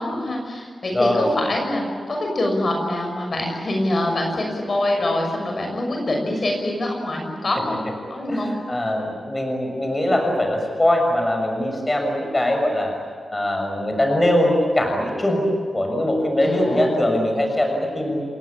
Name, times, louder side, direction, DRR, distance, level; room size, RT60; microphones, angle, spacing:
voice 1, 0.0-7.8 8.1-8.5 16.4-16.9, left 1 dB, 45° left, 2 dB, 6.4 m, -25 dB
voice 2, 0.9-1.3 8.3-12.9 13.3-15.4 15.7-18.2, left 1 dB, 20° left, 3 dB, 6.7 m, -21 dB
29.5 x 21.5 x 8.7 m, 2.1 s
wide cardioid pair, 140°, 0 cm